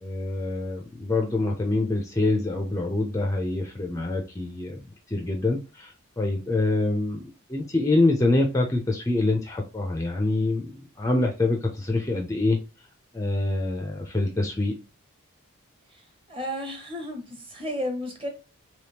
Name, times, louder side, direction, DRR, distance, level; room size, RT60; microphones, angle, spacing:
voice 1, 0.0-4.8 5.1-10.7 11.0-12.6 13.1-14.7, left 2 dB, 15° left, 0.5 m, -25 dB
voice 2, 16.3-18.3, equal, 25° right, 1.0 m, -32 dB
3.5 x 3.0 x 2.8 m
head